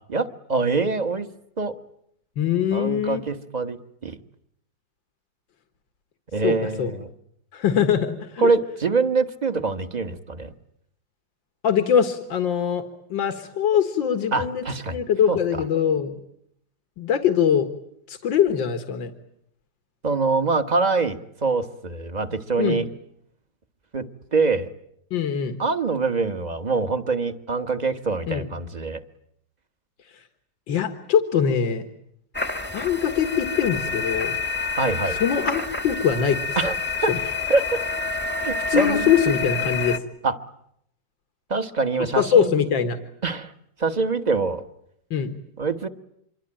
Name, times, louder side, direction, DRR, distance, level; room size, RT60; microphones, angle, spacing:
voice 1, 0.1-1.3 1.6-1.7 2.7-4.2 6.3-7.1 8.4-10.5 14.3-15.0 15.3-15.4 20.0-22.9 23.9-24.7 25.6-29.0 34.8-35.2 36.6-36.7 37.0-37.8 38.4-39.1 40.2-40.3 41.5-42.5 43.2-43.5 43.8-44.6 45.6-45.9, right 4 dB, 25° right, 9 dB, 1.1 m, -24 dB
voice 2, 2.4-3.2 6.4-6.9 7.5-8.5 11.6-12.8 13.1-16.2 17.0-17.7 18.1-19.1 22.6-22.8 25.1-25.6 28.3-28.5 30.1-30.2 30.7-31.8 32.7-34.4 35.1-36.6 37.1-37.2 38.7-40.0 42.2-43.0 45.1-45.3, left 8 dB, 85° left, 7 dB, 2.2 m, -22 dB
sound 1, 32.3-40.0, left 4 dB, 10° left, 0.9 m, -28 dB
26.5 x 24.0 x 8.9 m, 0.74 s
omnidirectional pair, 2.0 m